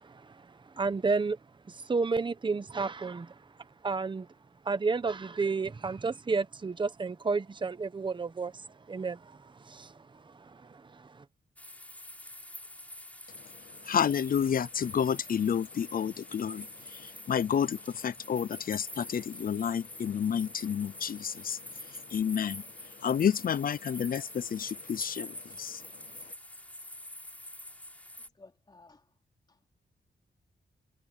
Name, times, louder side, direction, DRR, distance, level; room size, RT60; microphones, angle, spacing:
voice 1, 0.0-1.4 1.7-3.3 3.8-4.3 4.6-11.2, right 4 dB, 25° right, 1.0 m, -32 dB
sound 1, 11.6-28.3, left 1 dB, 10° left, 7.9 m, -46 dB
voice 2, 13.8-16.7 16.9-21.6 21.9-22.6 23.0-25.8, left 8 dB, 50° left, 0.6 m, -30 dB
voice 3, 28.2-29.1 29.5-29.7, left 3 dB, 25° left, 3.5 m, -57 dB
wide cardioid pair, 145°, 18 cm